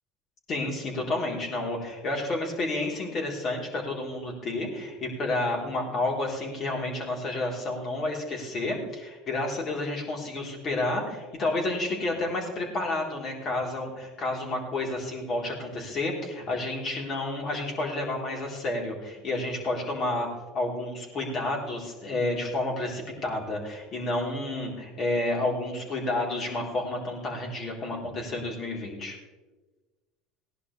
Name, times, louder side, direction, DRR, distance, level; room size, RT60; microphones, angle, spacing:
voice 1, 0.5-20.3 20.5-29.1, left 2 dB, 45° left, -1 dB, 4.0 m, -30 dB
17.5 x 11.0 x 3.4 m, 1.2 s
supercardioid pair, 100°, 0 cm